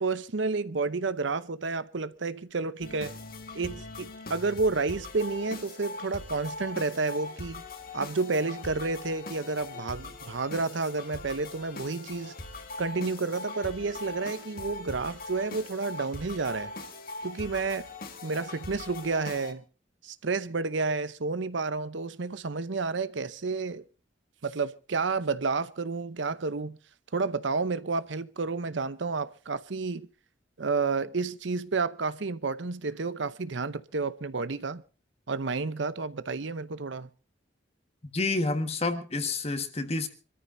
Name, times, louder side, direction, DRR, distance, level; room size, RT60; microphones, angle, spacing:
voice 1, 0.0-3.1 3.5-7.6 7.9-12.3 12.8-16.7 17.2-17.9 18.2-19.6 20.0-23.8 24.4-26.8 27.1-30.1 30.6-34.8 35.3-37.1, right 4 dB, 70° right, 0.8 m, -30 dB
sound 1, 2.8-19.5, left 2 dB, 50° left, 1.7 m, -41 dB
voice 2, 38.1-40.1, left 3 dB, 30° left, 1.5 m, -29 dB
26.0 x 14.0 x 2.7 m
head